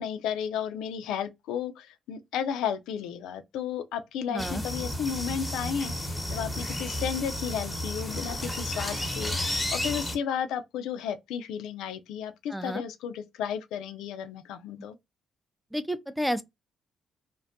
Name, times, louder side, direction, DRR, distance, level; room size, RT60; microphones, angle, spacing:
voice 1, 0.0-15.0, left 8 dB, 85° left, 0.3 m, -33 dB
voice 2, 4.3-4.6 12.5-12.8 15.7-16.4, equal, 5° right, 0.4 m, -30 dB
sound 1, 4.4-10.2, left 1 dB, 10° left, 0.8 m, -32 dB
2.5 x 2.1 x 2.5 m
supercardioid pair, 65°, 0 cm